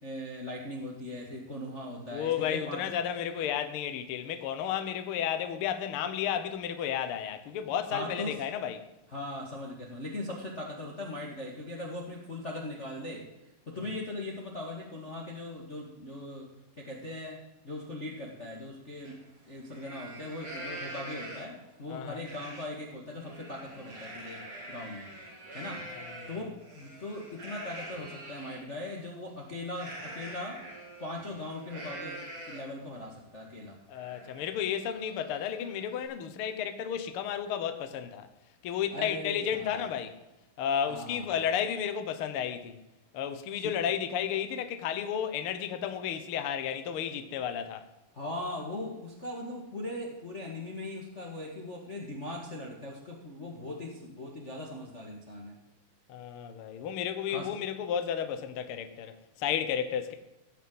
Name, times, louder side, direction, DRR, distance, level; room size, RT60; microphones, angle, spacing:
voice 1, 0.0-2.8 7.9-8.3 9.1-13.3 13.7-16.5 16.8-17.4 17.6-19.2 19.4-25.1 25.5-25.9 26.3-30.6 31.0-33.8 38.9-39.9 40.9-41.4 43.6-43.7 48.1-55.6 57.3-57.5, left 1 dB, 30° left, 1.3 m, -39 dB
voice 2, 2.1-8.8 21.9-22.2 26.0-26.3 33.9-38.3 38.6-40.1 40.6-42.8 43.1-47.9 56.1-60.1, left 9 dB, 90° left, 1.2 m, -32 dB
Livestock farm animals working animals, 19.0-19.1 19.6-21.6 22.2-22.6 23.0-28.6 29.7-32.8 33.2-33.3 33.7-36.0, right 1 dB, 40° right, 4.9 m, -45 dB
16.0 x 6.1 x 7.8 m
omnidirectional pair, 4.1 m